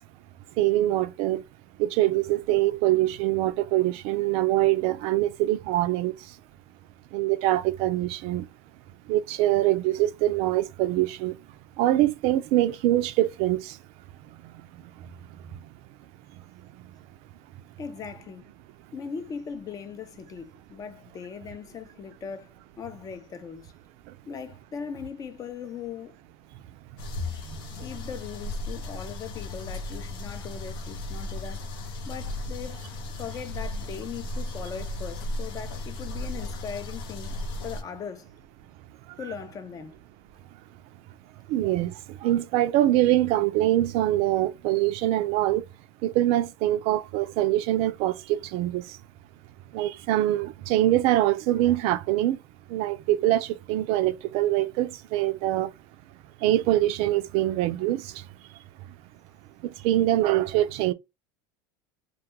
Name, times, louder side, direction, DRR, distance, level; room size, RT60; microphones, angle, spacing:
voice 1, 0.6-1.4 1.8-6.1 7.1-8.4 9.1-11.3 11.8-13.7 41.5-41.9 42.2-45.6 46.0-48.8 49.7-52.4 52.7-55.7 56.4-58.1 59.6-60.9, right 14 dB, 55° right, 0.3 m, -24 dB
voice 2, 17.8-18.5 18.9-23.7 24.3-26.2 27.8-31.7 32.1-32.9 33.1-38.3 39.2-40.0, left 6 dB, 30° left, 0.5 m, -39 dB
sound 1, 27.0-37.8, left 2 dB, 75° left, 0.6 m, -35 dB
2.2 x 2.2 x 2.9 m
supercardioid pair, 110°, 12 cm